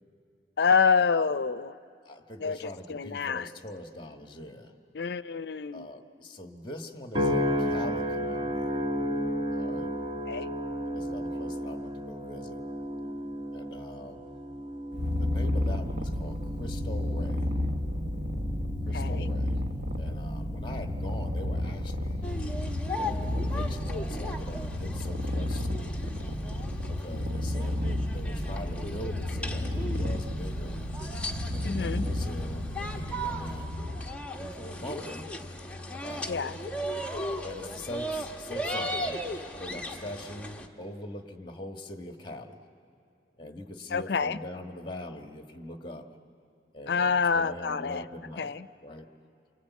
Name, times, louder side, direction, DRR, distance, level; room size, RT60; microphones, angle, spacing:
voice 1, 0.6-1.7 2.4-3.5 4.9-5.9 10.3-10.5 18.9-19.2 31.6-32.1 36.3-36.6 43.9-44.4 46.9-48.0 48.4-48.7, left 5 dB, 65° left, 15 dB, 0.5 m, -27 dB
voice 2, 2.0-4.7 5.7-8.8 9.5-9.9 10.9-12.6 13.5-14.3 15.2-17.6 18.8-19.6 20.0-22.3 22.8-25.9 26.9-30.8 31.5-33.9 34.4-35.3 36.0-36.6 37.4-42.6 43.4-46.1 46.7-48.5 48.8-49.1, left 1 dB, 25° left, 5 dB, 1.4 m, -42 dB
sound 1, 7.1-21.6 22.2-22.6, equal, 30° right, 1.8 m, -34 dB
Purr, 14.9-34.3, left 1 dB, 75° right, 1.4 m, -32 dB
sound 2, 22.2-40.7, equal, 5° left, 1.1 m, -37 dB
28.5 x 23.5 x 8.3 m, 2.7 s
head